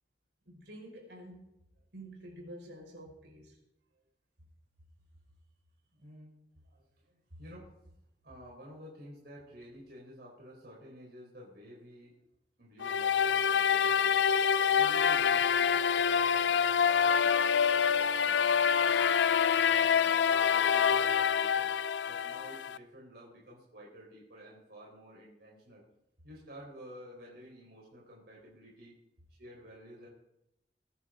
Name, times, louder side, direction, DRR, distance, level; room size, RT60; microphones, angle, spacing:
voice 1, 0.5-1.5 1.9-3.6 7.3-7.4, right 1 dB, 85° right, -1 dB, 5.6 m, -48 dB
voice 2, 5.9-7.7 8.2-12.2 12.6-14.1 14.7-19.0 19.5-25.8 26.2-29.0 29.4-30.1, equal, 60° right, -4 dB, 4.4 m, -51 dB
sound 1, 12.8-22.8, left 7 dB, 85° left, 0.5 m, -26 dB
21.5 x 11.0 x 3.9 m, 0.84 s
head